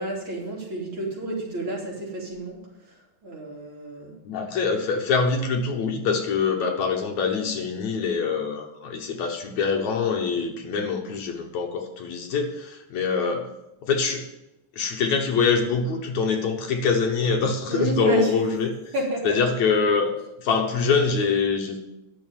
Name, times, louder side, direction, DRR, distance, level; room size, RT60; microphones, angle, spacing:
voice 1, 0.0-2.6 3.2-4.1 17.7-18.3 18.9-19.4, right 2 dB, 40° right, -4 dB, 3.9 m, -29 dB
voice 2, 4.2-13.5 13.8-14.3 14.7-18.9 19.2-20.1 20.4-21.8, left 5 dB, 70° left, 3 dB, 2.5 m, -24 dB
11.0 x 7.1 x 9.2 m, 0.91 s
omnidirectional pair, 3.5 m